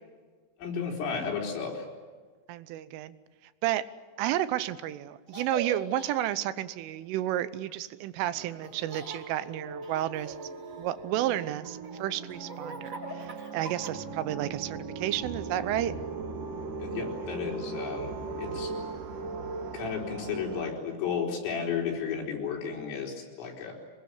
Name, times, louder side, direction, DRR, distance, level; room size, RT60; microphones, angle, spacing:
voice 1, 0.6-1.9 16.8-18.7 19.7-23.7, left 6 dB, 85° left, 0 dB, 7.0 m, -33 dB
voice 2, 2.5-3.2 3.6-3.9 4.2-10.4 10.8-15.9, right 13 dB, 80° right, 14 dB, 3.4 m, -31 dB
Laughter, 5.3-6.1 8.6-9.2 9.8-11.1 11.6-14.2, right 4 dB, 25° right, 5.1 m, -41 dB
sound 1, 8.2-20.7, right 3 dB, 55° right, 2.6 m, -39 dB
26.0 x 21.0 x 9.6 m, 1.4 s
omnidirectional pair, 5.7 m